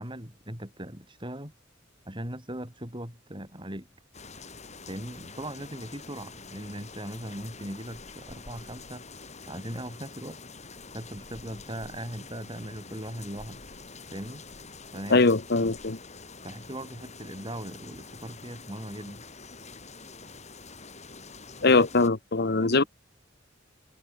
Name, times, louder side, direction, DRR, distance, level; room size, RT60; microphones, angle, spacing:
voice 1, 0.0-1.5 2.1-3.9 4.9-9.0 9.5-10.4 10.9-13.6 14.1-14.4 14.9-15.3 16.4-19.2 21.6-21.9 22.6-22.9, right 1 dB, 25° right, 8.0 m, -39 dB
sound 1, 4.1-22.1, left 4 dB, 35° left, 6.6 m, -46 dB
voice 2, 15.1-16.0 21.6-22.8, left 3 dB, 55° left, 1.2 m, -22 dB
head